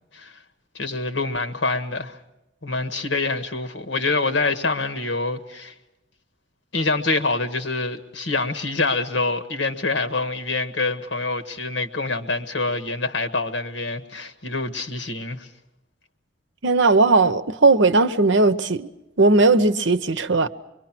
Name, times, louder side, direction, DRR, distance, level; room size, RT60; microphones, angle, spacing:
voice 1, 0.7-2.2 2.6-5.7 6.7-15.5, left 3 dB, 75° left, 1.5 m, -26 dB
voice 2, 16.6-18.9 19.2-20.5, right 3 dB, 75° right, 0.9 m, -17 dB
24.5 x 23.5 x 6.0 m
head